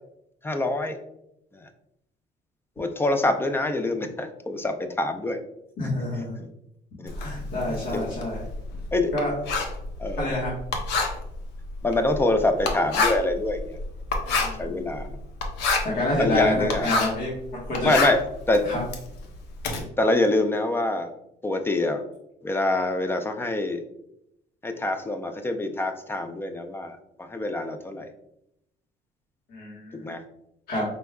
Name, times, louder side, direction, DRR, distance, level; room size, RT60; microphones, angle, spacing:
voice 1, 0.4-1.0 2.8-5.4 7.0-7.1 7.7-8.2 8.9-9.1 10.0-10.3 11.8-13.6 14.6-15.1 16.2-16.9 17.8-18.2 18.5-18.6 20.0-21.1 21.4-22.0 22.4-23.8 24.6-27.0 27.3-28.1 30.0-30.2, left 2 dB, 15° left, 7 dB, 0.5 m, -25 dB
voice 2, 5.8-6.4 7.1-8.4 9.1-9.3 10.2-10.5 14.2-14.8 15.8-17.9 18.6-18.8 29.5-30.0 30.7-30.8, left 1 dB, 65° left, -6 dB, 1.4 m, -28 dB
Writing, 7.1-17.3 17.6-19.8, left 3 dB, 85° left, 0.8 m, -28 dB
5.1 x 3.4 x 2.3 m, 0.79 s
cardioid pair, 110°, 17 cm